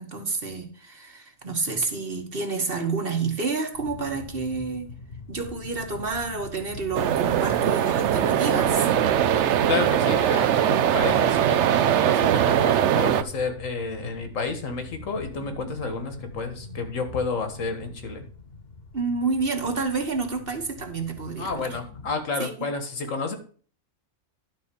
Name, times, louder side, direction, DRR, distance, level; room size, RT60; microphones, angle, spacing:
voice 1, 0.0-4.9 5.3-8.9 18.9-21.8 22.4-22.7, right 4 dB, 45° right, 1.6 m, -29 dB
sound 1, 3.7-22.1, left 3 dB, 50° left, 1.3 m, -42 dB
sound 2, 6.9-13.2, right 10 dB, 65° right, 0.9 m, -21 dB
voice 2, 9.7-18.3 21.4-23.4, left 4 dB, 80° left, 1.8 m, -31 dB
11.5 x 4.2 x 6.8 m
omnidirectional pair, 1.4 m